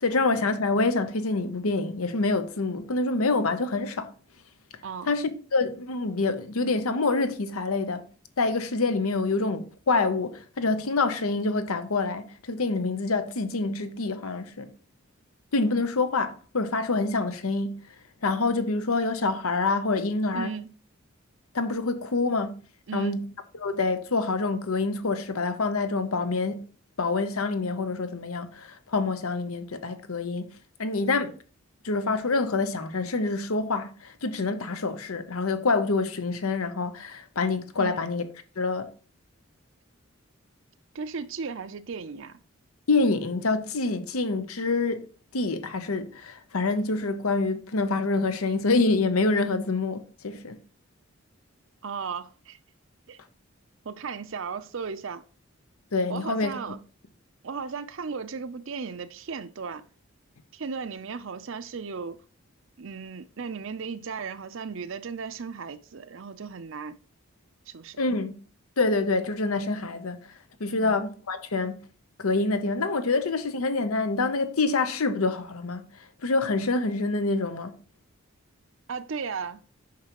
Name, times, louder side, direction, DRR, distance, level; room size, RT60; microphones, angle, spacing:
voice 1, 0.0-4.1 5.1-8.0 8.4-14.7 15.5-17.8 18.2-20.5 21.5-22.6 22.9-23.3 23.6-26.6 27.0-30.5 30.8-31.3 31.8-38.2 38.6-38.9 42.9-50.6 55.9-56.6 68.0-68.4 68.8-70.2 70.6-71.8 72.2-75.8 76.2-77.7, left 3 dB, 90° left, 0.8 m, -26 dB
voice 2, 20.3-20.7 22.9-23.2 37.8-38.0 40.9-42.4 51.8-52.6 53.1-53.2 53.8-55.2 56.1-56.8 57.4-59.8 60.5-62.2 62.8-67.0 67.7-68.0 70.8-71.0 78.9-79.6, right 5 dB, 65° right, 0.6 m, -35 dB
8.5 x 6.0 x 3.0 m
head